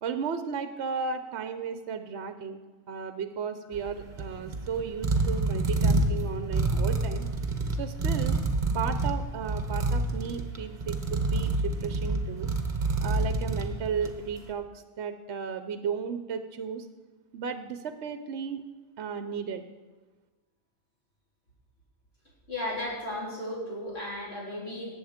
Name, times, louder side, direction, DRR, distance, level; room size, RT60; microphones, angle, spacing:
voice 1, 0.0-2.6 2.9-7.2 7.8-8.4 8.7-12.5 13.0-16.9 17.3-18.6 19.0-19.7, right 6 dB, 65° right, 9 dB, 0.9 m, -34 dB
sound 1, 3.7-14.3, right 2 dB, 40° right, 1.2 m, -28 dB
voice 2, 22.5-24.9, left 1 dB, 55° left, -7 dB, 4.3 m, -35 dB
18.5 x 7.9 x 5.0 m, 1.2 s
omnidirectional pair, 1.3 m